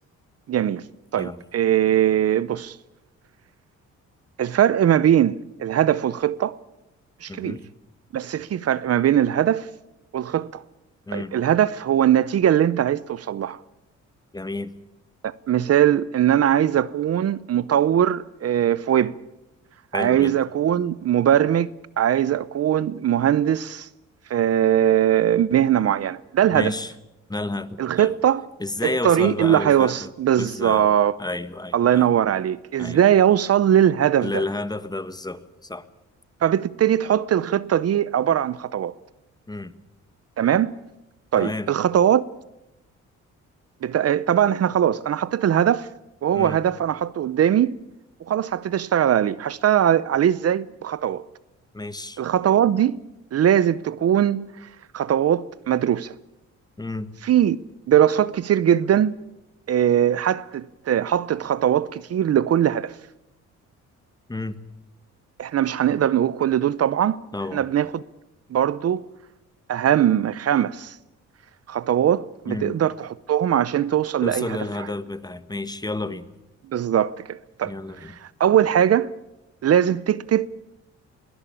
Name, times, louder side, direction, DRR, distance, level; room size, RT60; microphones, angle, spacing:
voice 1, 0.5-0.8 1.1-2.8 4.4-6.6 7.2-7.6 8.1-9.7 10.1-10.6 11.1-13.6 15.2-19.2 19.9-21.7 22.0-23.9 24.3-26.7 27.8-28.5 28.8-31.2 31.7-34.4 36.4-38.9 40.4-40.7 41.3-42.3 43.8-45.9 46.2-47.8 48.2-51.2 52.2-53.0 53.3-54.7 54.9-56.1 57.2-57.6 57.9-59.1 59.7-63.0 65.4-67.2 67.5-68.0 68.5-69.0 69.7-71.0 71.7-74.9 76.7-79.1 79.6-80.5, right 10 dB, 55° right, 0.7 m, -20 dB
voice 2, 7.3-7.6 11.1-11.3 14.3-14.7 19.9-20.4 26.5-26.9 27.3-27.7 28.0-28.1 28.6-30.1 30.4-30.9 31.2-32.0 32.8-33.0 34.2-35.9 39.5-39.7 41.4-41.7 46.3-46.6 51.7-52.2 56.8-57.1 64.3-64.6 67.3-67.6 72.5-72.8 74.2-76.3 77.6-78.2, left 2 dB, 15° left, 1.5 m, -30 dB
21.5 x 19.0 x 8.6 m
cardioid pair, 90°, 30 cm